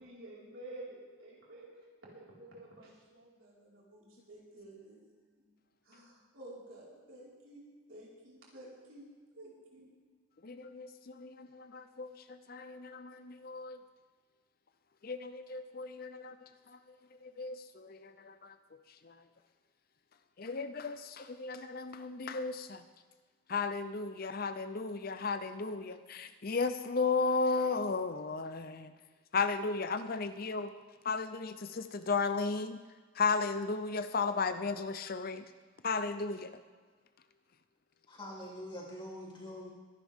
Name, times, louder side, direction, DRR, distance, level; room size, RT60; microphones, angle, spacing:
voice 1, 0.0-5.1 5.4-5.5 5.8-9.1 9.3-9.9, right 1 dB, 65° right, -5 dB, 4.9 m, -51 dB
voice 2, 10.4-12.1 12.5-13.8 15.0-16.3 17.2-18.5 19.1-19.2 20.4-22.8 23.5-28.9 29.3-30.7 31.0-32.8 33.2-35.4 35.8-36.5, left 4 dB, 45° left, 10 dB, 0.6 m, -34 dB
voice 3, 38.1-39.7, left 1 dB, 25° left, -4 dB, 3.2 m, -44 dB
23.5 x 11.0 x 3.6 m, 1.4 s
head